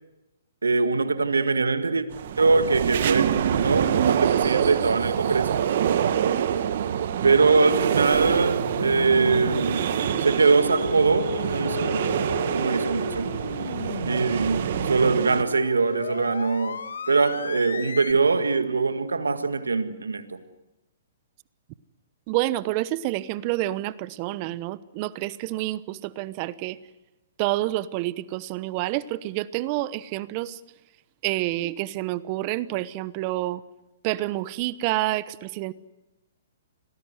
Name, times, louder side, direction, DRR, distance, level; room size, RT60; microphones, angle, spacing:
voice 1, 0.6-2.1 2.4-5.5 6.1-6.2 7.2-9.8 10.2-12.2 12.5-13.3 14.0-16.8 17.1-20.4, right 4 dB, 90° right, 1.8 m, -22 dB
sound 1, 2.1-15.4, right 9 dB, 60° right, 1.5 m, -26 dB
sound 2, 8.1-18.1, left 6 dB, 75° left, 1.7 m, -35 dB
voice 2, 22.3-26.8 27.4-30.6 31.2-33.6 34.0-35.7, right 16 dB, 40° right, 0.9 m, -28 dB
26.5 x 18.5 x 8.1 m
hypercardioid pair, 125°, 0 cm